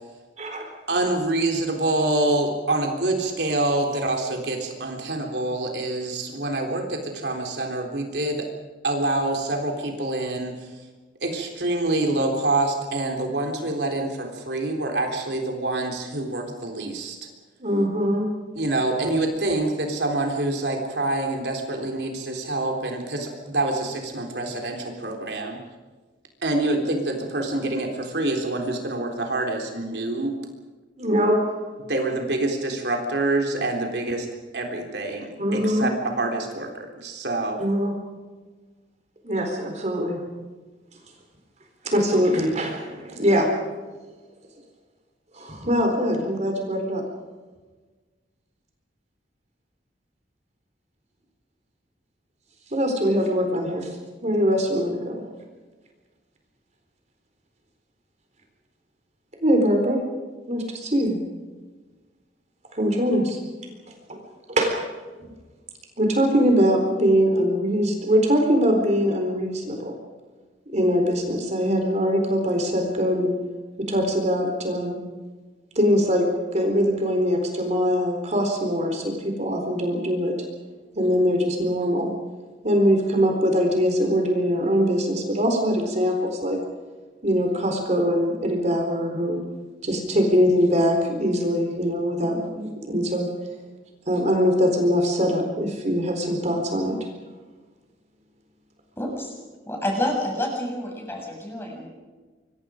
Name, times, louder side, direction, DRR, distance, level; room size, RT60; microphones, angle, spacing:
voice 1, 0.4-0.7 17.6-18.3 31.0-31.6 35.4-35.9 37.6-38.0 39.2-40.2 41.8-43.5 45.3-47.0 52.7-53.9 54.2-55.2 59.4-60.1 60.5-61.2 62.7-63.4 64.1-64.2 64.5-64.7 66.0-69.9 70.7-73.3 73.8-75.0 75.8-76.3 76.5-80.3 80.9-82.1 82.6-86.6 87.2-89.4 89.8-93.3 94.1-97.0, equal, 40° right, 3 dB, 4.1 m, -22 dB
voice 2, 0.9-8.5 8.8-10.6 11.2-17.2 18.6-25.6 26.4-30.4 31.9-34.3 34.5-37.6, right 2 dB, 65° right, 2 dB, 3.7 m, -26 dB
voice 3, 99.0-99.4 99.6-101.9, left 1 dB, 15° left, 0 dB, 7.3 m, -28 dB
26.5 x 23.5 x 5.1 m, 1.3 s
head